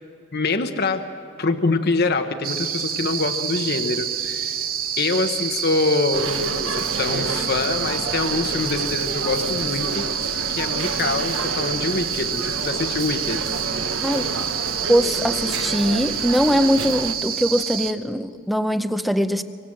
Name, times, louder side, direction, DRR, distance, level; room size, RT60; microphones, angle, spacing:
voice 1, 0.3-1.1 1.4-4.6 5.0-10.2 10.5-13.4, left 3 dB, 50° left, 7 dB, 1.0 m, -25 dB
sound 1, 2.4-17.9, right 8 dB, 45° right, 1.2 m, -28 dB
sound 2, 6.1-17.1, right 3 dB, 65° right, 1.3 m, -30 dB
voice 2, 14.9-19.4, equal, ahead, 11 dB, 0.7 m, -21 dB
25.5 x 25.0 x 7.8 m, 2.6 s
head